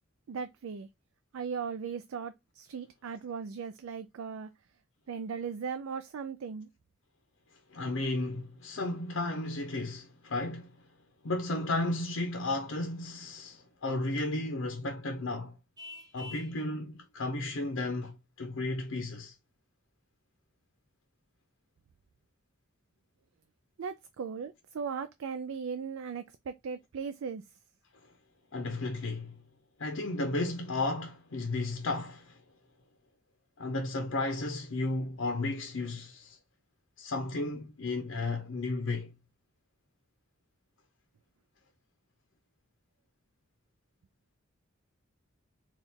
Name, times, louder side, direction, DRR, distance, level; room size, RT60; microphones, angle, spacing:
voice 1, 0.3-0.9 1.3-4.5 5.1-6.7 23.8-27.4, right 6 dB, 75° right, 0.4 m, -38 dB
voice 2, 7.7-10.8 11.2-15.6 16.1-19.3 28.5-29.4 29.8-32.4 33.6-36.4 37.0-39.1, left 2 dB, 70° left, 0.7 m, -33 dB
Vehicle horn car horn honking, 15.8-16.6, left 2 dB, 20° right, 0.7 m, -46 dB
4.3 x 2.4 x 3.5 m
head